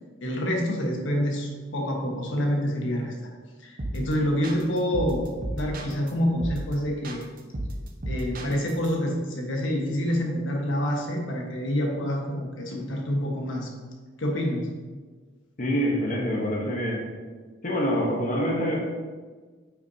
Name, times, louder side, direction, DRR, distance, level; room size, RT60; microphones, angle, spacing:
voice 1, 0.2-3.1 3.6-5.2 5.5-7.3 8.1-13.7 14.2-14.7, equal, 90° left, 0 dB, 1.4 m, -27 dB
sound 1, 3.8-4.1 4.4-6.1 6.4-6.7 7.0-8.9, right 1 dB, 45° right, 0.9 m, -33 dB
voice 2, 15.6-17.0 17.6-18.8, equal, 40° left, -2 dB, 1.1 m, -25 dB
8.7 x 6.0 x 2.8 m, 1.4 s
head